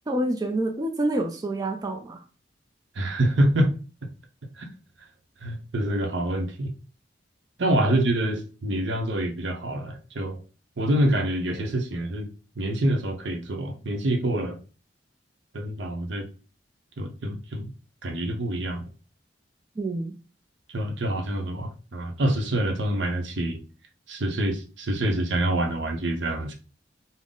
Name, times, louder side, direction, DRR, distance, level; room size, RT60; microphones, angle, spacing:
voice 1, 0.1-2.2 19.8-20.1, right 1 dB, 20° right, 0.4 m, -27 dB
voice 2, 3.0-3.7 4.5-4.7 5.4-6.7 7.6-10.4 10.8-12.3 12.6-14.6 15.5-16.3 17.0-17.7 18.0-18.9 20.7-23.6 24.1-26.5, right 1 dB, 70° right, 0.7 m, -26 dB
3.7 x 2.0 x 3.8 m
head